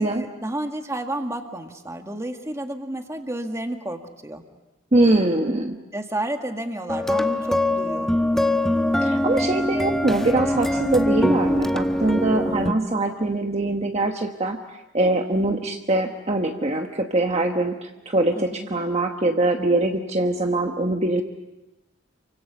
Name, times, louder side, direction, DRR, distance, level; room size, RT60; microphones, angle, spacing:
voice 1, 0.0-4.4 5.9-8.2 18.3-18.7, right 1 dB, 15° right, 5 dB, 1.9 m, -31 dB
voice 2, 4.9-5.8 9.0-14.6 14.9-21.2, right 2 dB, 35° right, 4 dB, 1.2 m, -23 dB
sound 1, 6.9-12.7, left 1 dB, ahead, 1.0 m, -23 dB
28.5 x 24.5 x 7.0 m, 1.0 s
head